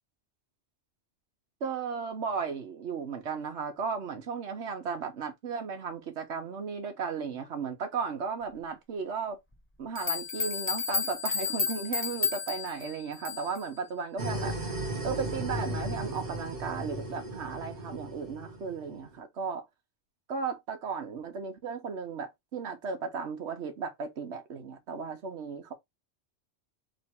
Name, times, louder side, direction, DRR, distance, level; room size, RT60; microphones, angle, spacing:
voice 1, 1.6-9.4 9.8-14.6 15.0-19.6 20.3-25.7, right 5 dB, 85° right, 1.2 m, -35 dB
sound 1, 9.5-9.6 10.0-13.7, left 5 dB, 15° left, 0.5 m, -32 dB
sound 2, 14.2-19.0, right 1 dB, 55° right, 1.2 m, -36 dB
3.3 x 3.0 x 4.2 m
omnidirectional pair, 1.1 m